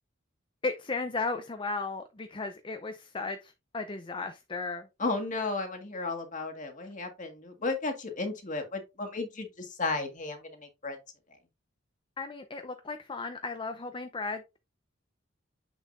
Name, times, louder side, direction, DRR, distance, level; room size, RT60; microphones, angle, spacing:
voice 1, 0.6-4.9 12.2-14.6, left 3 dB, 25° left, 0.6 m, -35 dB
voice 2, 5.0-11.0, left 3 dB, 40° left, 1.7 m, -34 dB
7.1 x 6.3 x 2.5 m
head